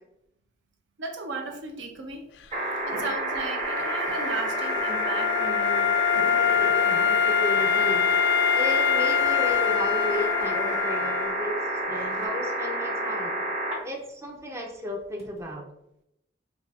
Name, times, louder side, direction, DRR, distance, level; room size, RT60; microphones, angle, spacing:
voice 1, 1.0-2.3 2.9-6.0 11.0-11.1, right 3 dB, 80° right, 4 dB, 0.6 m, -36 dB
Laughter, 2.4-2.5 2.9-4.4 6.1-7.3, left 1 dB, 65° right, 1.2 m, -39 dB
sound 1, 2.5-13.8 15.2-15.3, right 2 dB, 35° right, 1.1 m, -30 dB
Wind instrument woodwind instrument, 3.6-11.4, left 9 dB, 70° left, 0.3 m, -25 dB
voice 2, 6.8-8.0 8.5-13.4 13.8-15.7, left 1 dB, 15° right, 1 dB, 0.4 m, -34 dB
4.7 x 2.5 x 2.3 m, 0.80 s
head